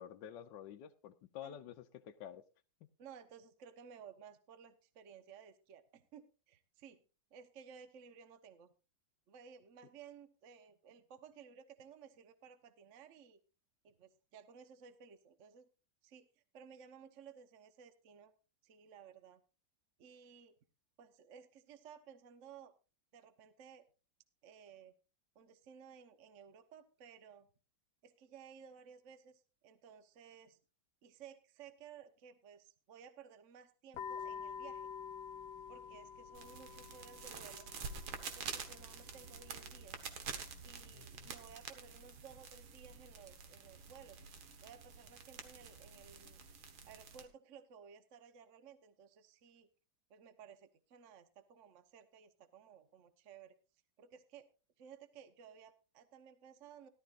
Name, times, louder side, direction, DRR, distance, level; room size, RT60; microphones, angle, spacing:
voice 1, 0.0-2.4 40.9-41.3, left 9 dB, 70° left, 6 dB, 1.3 m, -50 dB
voice 2, 3.0-7.0 7.3-8.7 9.3-13.4 13.8-15.7 16.0-18.3 18.6-19.4 20.0-20.6 21.0-22.7 23.1-23.8 24.4-24.9 25.3-27.5 28.0-30.6 31.0-34.9 35.7-37.7 38.2-40.0 40.6-44.2 44.6-46.4 46.9-49.7 50.1-53.6 54.0-54.5 54.8-56.9, right 7 dB, 50° right, 10 dB, 1.1 m, -57 dB
sound 1, 33.9-40.9, left 7 dB, 85° left, 1.7 m, -49 dB
sound 2, 36.3-47.2, right 6 dB, 85° right, 2.2 m, -48 dB
17.5 x 12.0 x 2.5 m, 0.32 s
omnidirectional pair, 2.2 m